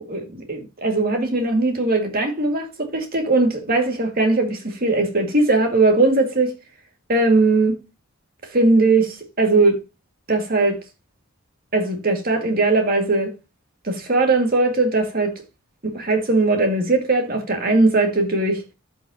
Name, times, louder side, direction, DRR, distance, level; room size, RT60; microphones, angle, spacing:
voice 1, 0.1-6.5 7.1-7.8 8.5-9.8 10.3-10.8 11.7-13.3 13.8-15.4 15.9-18.6, right 2 dB, 45° right, 2.0 m, -19 dB
13.5 x 5.5 x 2.8 m
head